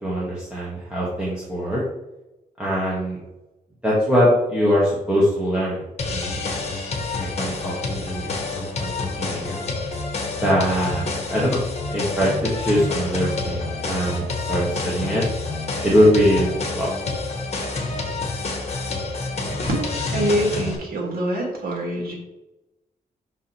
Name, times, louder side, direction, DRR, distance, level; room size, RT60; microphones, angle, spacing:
voice 1, 0.0-1.8 2.6-3.2 3.8-6.4 7.4-9.5 10.4-11.6 11.9-15.2 15.8-16.9, equal, 5° right, -7 dB, 1.4 m, -22 dB
sound 1, 6.0-20.8, left 3 dB, 45° left, 1.3 m, -28 dB
voice 2, 20.1-22.1, equal, 75° right, -1 dB, 2.2 m, -24 dB
5.7 x 4.9 x 4.3 m, 0.98 s
wide cardioid pair, 150°, 16 cm